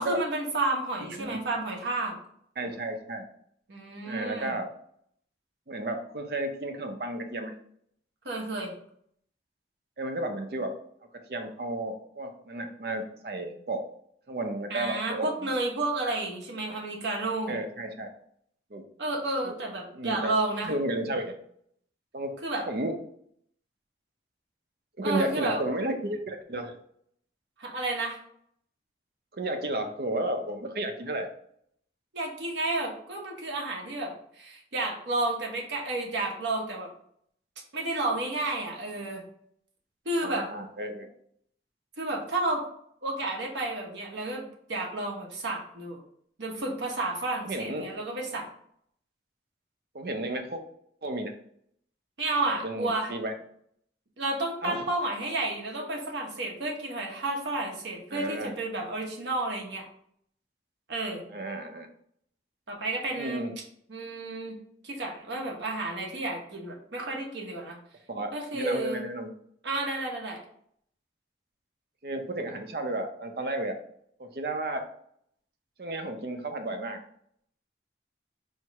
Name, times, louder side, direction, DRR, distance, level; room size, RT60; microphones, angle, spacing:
voice 1, 0.0-2.1 3.7-4.6 8.2-8.7 14.7-17.6 19.0-20.7 22.4-22.7 25.0-25.6 27.6-28.2 32.1-36.9 37.7-39.2 40.0-40.5 42.0-42.6 43.0-46.0 46.4-48.5 52.2-53.1 54.2-59.9 60.9-61.3 62.7-63.4 63.9-64.6 64.8-67.8 68.3-69.0 69.6-70.4, right 2 dB, 90° right, 0 dB, 1.1 m, -31 dB
voice 2, 2.6-3.3 4.0-4.7 5.7-7.5 10.0-10.7 11.3-13.9 14.3-15.3 17.5-18.1 18.7-18.8 19.4-19.5 19.9-20.3 20.6-21.3 22.1-22.3 22.7-22.9 25.0-26.7 29.3-31.3 40.2-41.1 47.4-47.9 49.9-50.6 51.0-51.3 52.6-53.3 54.6-54.8 58.1-58.5 61.3-61.9 63.1-63.5 68.1-69.3 72.0-73.8 74.2-74.8 75.8-77.0, right 1 dB, 60° right, 5 dB, 0.6 m, -32 dB
4.5 x 2.1 x 4.6 m, 0.66 s
head